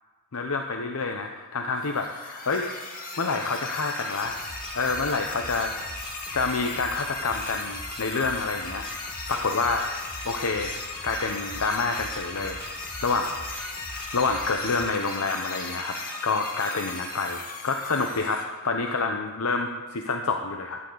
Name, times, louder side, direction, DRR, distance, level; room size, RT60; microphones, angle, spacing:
voice 1, 0.3-2.7 3.2-4.4 4.7-5.7 6.3-9.9 10.2-10.7 11.0-13.7 14.1-16.0 16.2-20.8, left 4 dB, 80° left, 4 dB, 0.8 m, -28 dB
sound 1, 1.8-18.4, left 3 dB, 40° left, 2.1 m, -37 dB
sound 2, 4.2-14.9, right 2 dB, 30° right, 0.7 m, -44 dB
13.5 x 11.0 x 3.9 m, 1.3 s
head